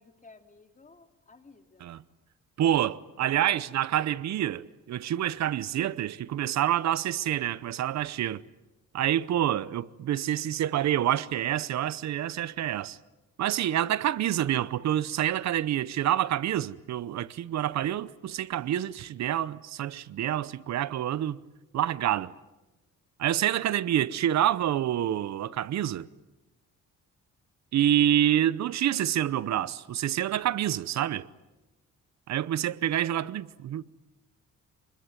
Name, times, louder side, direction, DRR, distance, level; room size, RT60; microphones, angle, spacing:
voice 1, 0.0-2.0 3.4-3.7 9.5-9.7 23.9-24.3, left 3 dB, 25° left, 2.8 m, -54 dB
voice 2, 2.6-8.4 8.9-13.0 13.4-21.4 21.7-22.3 23.2-26.1 27.7-31.2 32.3-33.8, right 11 dB, 65° right, 0.9 m, -27 dB
25.0 x 21.5 x 9.3 m
cardioid pair, 90°, 30 cm